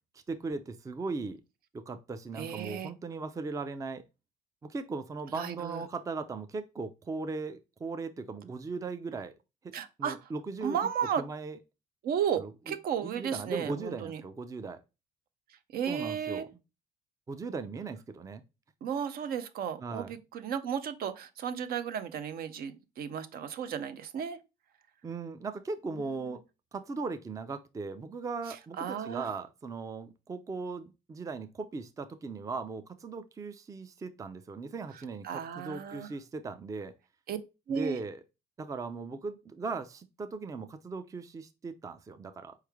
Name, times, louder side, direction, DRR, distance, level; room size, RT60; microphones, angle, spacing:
voice 1, 0.3-1.4 1.7-4.0 4.6-9.3 9.6-10.9 11.2-11.6 12.4-12.5 13.0-14.8 15.9-16.5 17.3-18.4 19.8-20.1 25.0-26.4 26.7-36.9 37.7-38.2 38.6-42.5, right 4 dB, 20° right, 0.4 m, -38 dB
voice 2, 2.4-2.9 5.3-5.8 9.7-10.2 10.6-11.2 12.0-14.2 15.7-16.5 18.8-24.4 25.9-26.2 28.5-29.3 35.2-36.1 37.3-37.4 37.7-38.0, right 8 dB, 60° right, 0.6 m, -34 dB
4.5 x 3.2 x 3.4 m
cardioid pair, 110°, 17 cm